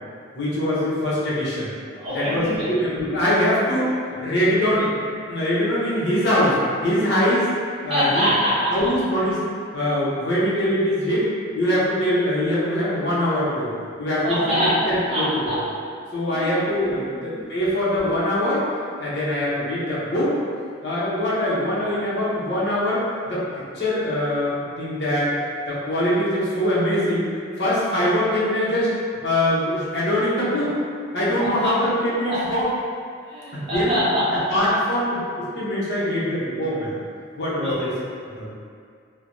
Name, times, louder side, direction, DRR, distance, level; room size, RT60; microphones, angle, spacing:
voice 1, 0.3-1.7 2.1-3.9 4.2-4.8 5.3-6.6 6.8-7.4 7.8-8.3 8.7-9.5 9.7-11.3 11.5-13.7 14.0-15.6 16.1-18.7 19.0-20.3 20.8-23.4 23.7-25.3 25.7-27.2 27.6-28.9 29.2-30.7 31.1-32.6 33.5-34.0 34.5-36.9 37.4-37.9 38.4-38.5, left 1 dB, 55° left, -9 dB, 0.8 m, -23 dB
voice 2, 1.9-2.7 4.5-4.9 7.9-8.7 14.2-14.8 15.1-15.6 16.3-16.6 17.1-17.3 31.4-31.7 32.1-32.4 33.3-34.5 37.6-37.8, equal, 30° right, -11 dB, 0.7 m, -24 dB
3.2 x 2.1 x 2.6 m, 2.2 s
head